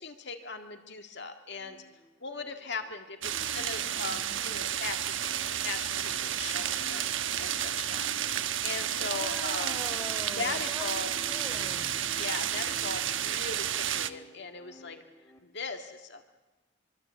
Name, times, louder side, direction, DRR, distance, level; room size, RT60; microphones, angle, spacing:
voice 1, 0.0-1.8 2.2-7.0 7.4-9.8 10.4-11.1 12.1-15.0 15.4-16.2, left 4 dB, 60° left, 6 dB, 2.1 m, -39 dB
sound 1, 1.5-15.4, equal, 15° left, 3.2 m, -53 dB
sound 2, 3.2-14.1, right 10 dB, 75° right, 1.2 m, -31 dB
voice 2, 3.3-4.7 8.8-10.9 11.2-11.9, equal, ahead, 4 dB, 4.4 m, -44 dB
26.5 x 24.0 x 8.3 m, 1.1 s
head